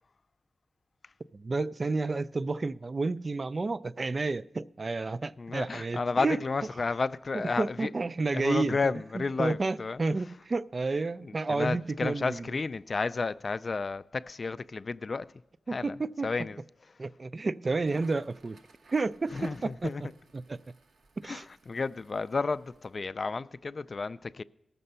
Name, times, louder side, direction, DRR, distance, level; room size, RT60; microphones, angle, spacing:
voice 1, 1.3-6.4 7.3-12.5 15.7-16.5 17.0-18.6 18.9-19.9 20.3-20.6 21.2-21.5, right 3 dB, 40° right, 0.3 m, -31 dB
voice 2, 5.4-7.9 8.3-10.0 11.2-15.3 15.7-16.0 16.2-16.6 19.3-20.0 21.2-24.4, left 4 dB, 45° left, 0.3 m, -32 dB
Crackle, 17.7-23.0, right 3 dB, 90° right, 0.9 m, -58 dB
18.0 x 6.8 x 5.5 m
wide cardioid pair, 120°, 0 cm